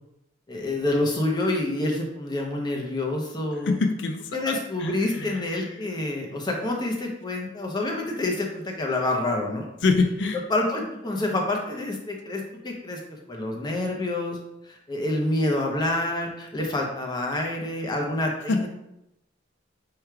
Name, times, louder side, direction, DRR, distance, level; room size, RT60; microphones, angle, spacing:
voice 1, 0.5-3.7 4.3-9.7 10.5-13.0 13.3-14.4 14.6-18.7, left 2 dB, 20° left, 1 dB, 0.7 m, -27 dB
voice 2, 3.7-5.5 9.8-10.4 18.5-18.7, left 3 dB, 65° left, 6 dB, 0.4 m, -25 dB
4.8 x 2.3 x 4.5 m, 0.87 s
head